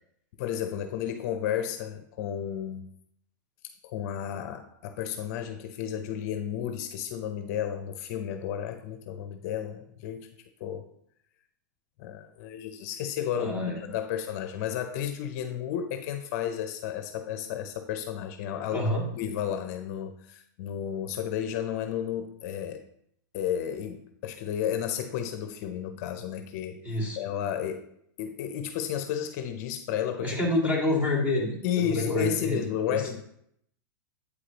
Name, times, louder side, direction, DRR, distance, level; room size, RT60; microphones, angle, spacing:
voice 1, 0.4-2.9 3.8-10.3 10.6-10.9 12.0-18.9 19.2-22.9 23.3-27.9 28.2-30.4 31.6-33.2, left 9 dB, 50° left, 8 dB, 0.6 m, -32 dB
voice 2, 13.4-13.8 18.7-19.0 26.8-27.2 30.2-32.6 32.9-33.0, left 2 dB, 15° right, -3 dB, 2.1 m, -27 dB
8.2 x 4.9 x 2.9 m, 0.70 s
supercardioid pair, 145°, 11 cm